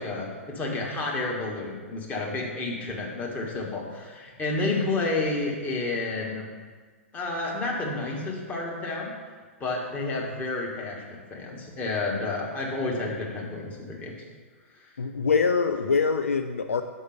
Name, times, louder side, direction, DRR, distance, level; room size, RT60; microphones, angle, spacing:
voice 1, 0.0-6.5 7.1-9.1 9.6-14.1 14.8-14.9, left 2 dB, 20° left, -2 dB, 1.6 m, -30 dB
voice 2, 15.0-16.8, left 5 dB, 70° left, 7 dB, 0.4 m, -24 dB
6.3 x 5.4 x 6.6 m, 1.5 s
figure-of-eight pair, 105°, 8 cm